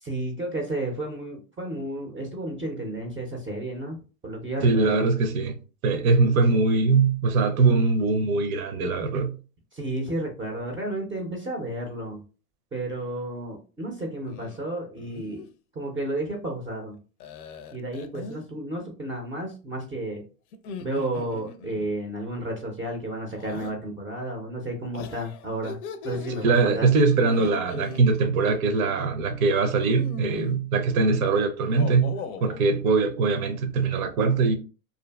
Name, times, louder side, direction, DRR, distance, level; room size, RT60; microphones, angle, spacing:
voice 1, 0.0-5.1 9.7-12.2 12.7-15.5 15.7-17.0 17.7-20.2 20.8-25.8 26.0-26.9, right 1 dB, 10° right, 0.4 m, -32 dB
voice 2, 4.6-5.6 5.8-9.3 26.4-34.6, right 4 dB, 75° right, 0.6 m, -22 dB
sound 1, 14.2-14.6 15.0-15.5 17.2-18.5 20.5-21.9 23.3-23.7 24.9-26.5 27.2-28.0 29.5-30.6 31.6-32.6, left 4 dB, 85° left, 0.5 m, -39 dB
2.5 x 2.5 x 2.2 m
hypercardioid pair, 120°, 42 cm